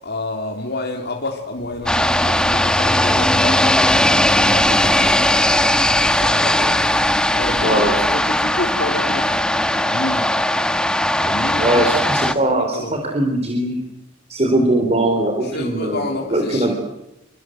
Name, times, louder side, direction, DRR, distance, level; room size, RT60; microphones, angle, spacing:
voice 1, 0.0-9.5 9.9-10.4 11.2-13.0 15.4-16.7, left 2 dB, 55° left, 1 dB, 3.5 m, -29 dB
sound 1, 1.6-8.6, equal, 30° left, 3.9 m, -34 dB
sound 2, 1.9-12.3, left 1 dB, 5° left, 1.4 m, -18 dB
voice 2, 7.6-7.9 11.5-13.8 14.3-16.7, right 1 dB, 35° right, 4 dB, 3.9 m, -20 dB
28.0 x 26.0 x 7.9 m, 0.88 s
head